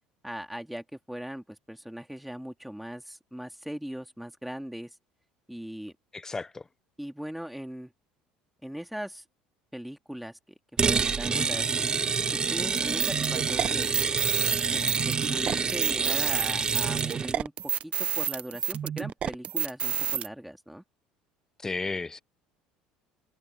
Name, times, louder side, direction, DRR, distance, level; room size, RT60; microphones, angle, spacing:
voice 1, 0.2-4.9 5.5-5.9 7.0-7.9 8.6-9.2 9.7-10.4 10.8-11.9 12.3-13.9 14.7-17.5 17.8-20.8, equal, ahead, 3.5 m, -39 dB
voice 2, 6.1-6.6 11.3-11.5 21.6-22.2, left 3 dB, 20° left, 0.8 m, -33 dB
sound 1, 10.8-17.4, right 5 dB, 30° right, 0.5 m, -27 dB
sound 2, 12.8-20.3, right 9 dB, 45° right, 0.9 m, -30 dB
hypercardioid pair, 80°, 3 cm